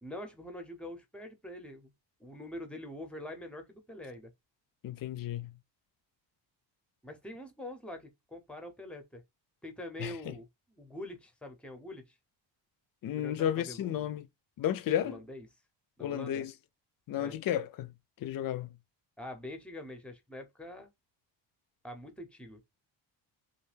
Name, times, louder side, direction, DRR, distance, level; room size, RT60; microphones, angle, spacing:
voice 1, 0.0-1.9 2.2-4.3 7.0-9.2 9.6-12.2 13.1-14.1 15.0-15.5 16.0-16.4 17.2-17.3 19.2-20.9 21.8-22.6, left 1 dB, 5° left, 0.7 m, -44 dB
voice 2, 4.8-5.5 10.0-10.3 13.0-14.3 14.6-15.2 16.0-16.5 17.1-18.8, left 10 dB, 50° left, 0.4 m, -33 dB
2.5 x 2.2 x 3.2 m
cardioid pair, 100°, 46 cm